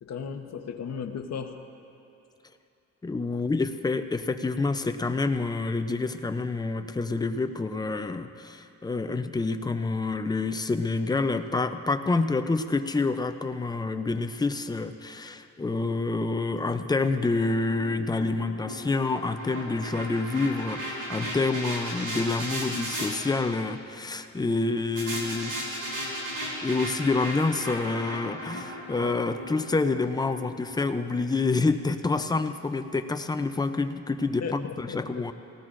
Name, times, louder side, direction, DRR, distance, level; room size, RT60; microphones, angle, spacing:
voice 1, 0.0-1.6 34.4-35.3, left 6 dB, 65° left, 5 dB, 0.9 m, -36 dB
voice 2, 3.0-25.6 26.6-35.3, left 3 dB, 15° left, 8 dB, 0.4 m, -27 dB
sound 1, 16.9-23.1 25.0-31.2, equal, 55° right, 3.6 m, -36 dB
18.0 x 18.0 x 2.5 m, 2.9 s
wide cardioid pair, 150°, 29 cm